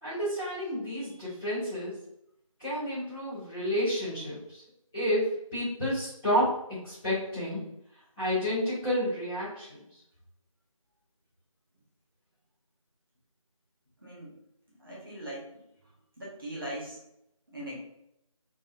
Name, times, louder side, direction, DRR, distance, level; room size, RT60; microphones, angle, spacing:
voice 1, 0.0-2.0 2.6-4.6 4.9-7.6 8.2-9.8, equal, 5° left, -22 dB, 1.0 m, -30 dB
voice 2, 14.0-14.3 14.8-15.5 16.2-17.0 17.5-17.8, right 1 dB, 40° right, -5 dB, 1.5 m, -40 dB
3.9 x 3.5 x 2.6 m, 0.79 s
figure-of-eight pair, 170°, 18 cm